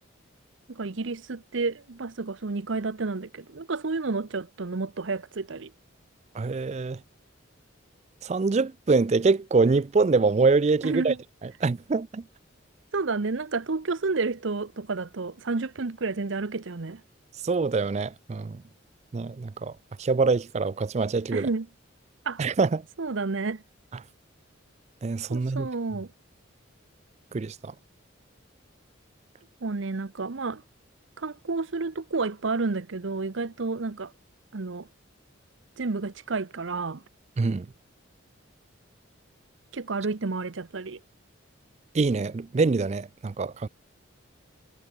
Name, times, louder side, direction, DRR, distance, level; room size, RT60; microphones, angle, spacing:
voice 1, 0.7-5.7 10.8-11.2 12.9-17.0 21.3-21.7 22.2-22.4 23.0-23.6 25.3-26.1 29.6-30.6 31.2-34.1 34.5-34.9 35.8-37.0 39.7-41.0, right 3 dB, 70° right, 0.8 m, -30 dB
voice 2, 6.4-7.0 8.2-11.1 11.6-12.2 17.4-18.6 19.1-19.7 20.0-21.5 22.4-22.8 25.0-25.7 27.3-27.7 37.4-37.7 41.9-43.7, right 4 dB, 35° right, 0.4 m, -24 dB
head